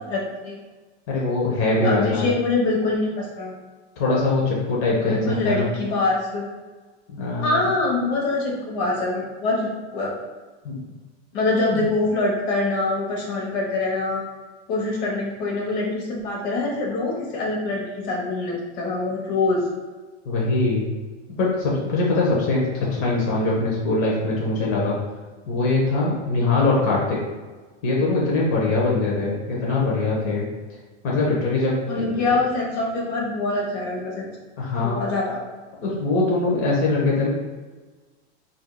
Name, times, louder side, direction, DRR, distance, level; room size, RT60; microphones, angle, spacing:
voice 1, 0.1-0.5 1.8-3.6 5.0-6.4 7.4-10.1 11.3-14.2 14.7-19.6 31.9-34.3 34.9-35.4, left 2 dB, 65° left, -2 dB, 1.2 m, -24 dB
voice 2, 1.1-2.3 4.0-5.7 7.1-7.6 10.6-10.8 11.7-11.8 20.2-20.8 21.4-25.0 25.5-27.2 27.8-30.5 31.0-32.2 34.6-35.0 35.8-37.3, left 3 dB, 40° left, -4 dB, 1.0 m, -22 dB
4.3 x 2.7 x 2.2 m, 1.3 s
supercardioid pair, 135°, 34 cm